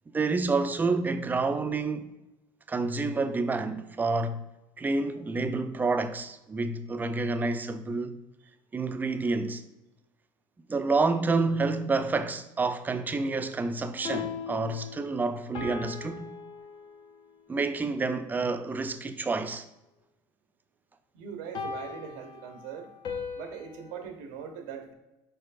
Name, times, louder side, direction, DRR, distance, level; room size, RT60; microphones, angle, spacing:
voice 1, 0.1-2.1 2.7-4.4 4.8-8.2 8.7-9.6 10.7-16.3 17.5-19.6, right 3 dB, 20° right, 0.3 m, -28 dB
sound 1, 13.9-17.3 21.5-24.0, left 5 dB, 50° left, 0.6 m, -39 dB
voice 2, 21.1-22.9 23.3-24.9, right 7 dB, 85° right, 0.7 m, -41 dB
4.6 x 4.4 x 2.5 m
supercardioid pair, 105°, 10 cm